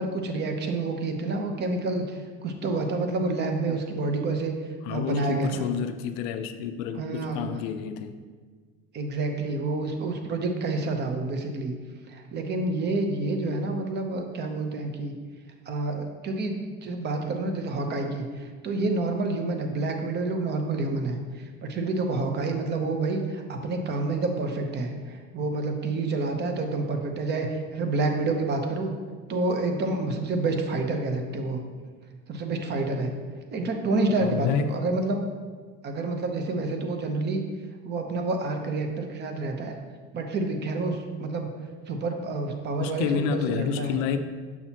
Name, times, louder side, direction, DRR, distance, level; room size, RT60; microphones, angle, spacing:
voice 1, 0.0-4.5 4.9-5.6 7.0-7.6 8.9-11.7 12.1-15.1 15.7-28.9 29.3-31.6 32.3-33.1 33.5-35.2 35.8-37.4 37.8-39.8 40.1-41.5 41.9-44.0, right 3 dB, 35° right, 4 dB, 0.8 m, -28 dB
voice 2, 4.8-8.1 34.2-34.8 42.8-44.2, left 8 dB, 75° left, 9 dB, 0.6 m, -29 dB
7.0 x 6.2 x 2.9 m, 1.5 s
cardioid pair, 130°, 30 cm